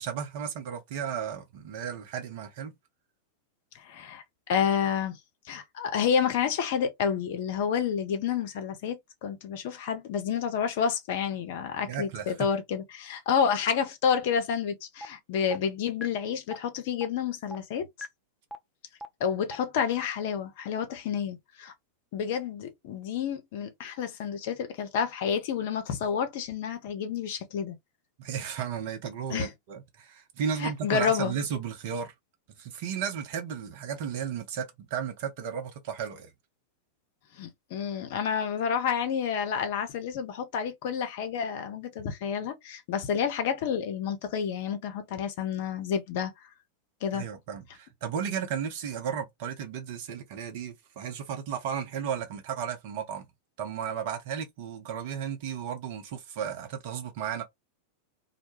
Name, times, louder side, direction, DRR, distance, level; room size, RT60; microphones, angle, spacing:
voice 1, 0.0-2.7 11.9-12.5 28.2-32.1 32.6-36.3 47.1-53.3 53.6-57.4, right 7 dB, 50° right, 0.7 m, -34 dB
voice 2, 3.7-4.2 4.5-5.2 5.5-17.9 19.2-21.7 22.1-27.8 29.3-29.5 30.6-31.3 37.4-46.3 47.0-47.2, left 7 dB, 50° left, 0.6 m, -29 dB
sound 1, 15.0-15.1 15.5-15.6 16.0-16.1 16.5-16.6 17.0-17.1 17.5-17.6 18.0-18.1 18.5-18.6 19.0-19.1 19.5-19.6, left 1 dB, 5° left, 0.3 m, -37 dB
2.2 x 2.1 x 2.9 m
figure-of-eight pair, 90°, 0 cm